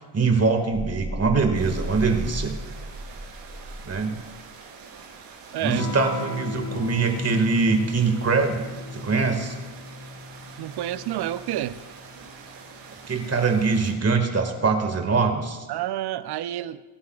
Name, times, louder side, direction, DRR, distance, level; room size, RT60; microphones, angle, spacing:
voice 1, 0.1-2.5 3.8-4.2 5.6-8.6 8.9-9.5 13.1-15.7, right 4 dB, 30° right, 4 dB, 1.9 m, -23 dB
sound 1, 0.7-4.4, right 1 dB, 10° right, 0.5 m, -34 dB
sound 2, 1.5-13.9, right 5 dB, 75° right, 3.8 m, -45 dB
Electric guitar / Strum, 5.7-14.0, left 3 dB, 45° left, 3.5 m, -36 dB
voice 2, 10.6-11.8 15.7-16.8, right 12 dB, 55° right, 14 dB, 0.7 m, -29 dB
23.5 x 9.3 x 2.4 m, 1.3 s
supercardioid pair, 70°, 47 cm